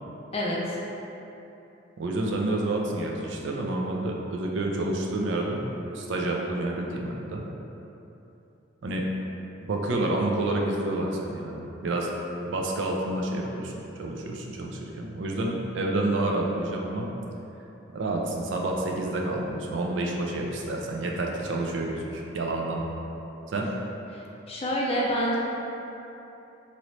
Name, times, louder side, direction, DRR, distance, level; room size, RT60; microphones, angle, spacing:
voice 1, 0.3-0.8 24.1-24.2 24.5-25.4, equal, 30° left, -4 dB, 0.4 m, -27 dB
voice 2, 2.0-7.5 8.8-9.1 9.7-12.1 12.5-17.1 17.9-22.8 23.5-23.7, right 2 dB, 65° right, 0 dB, 0.4 m, -29 dB
2.9 x 2.6 x 3.1 m, 3.0 s
head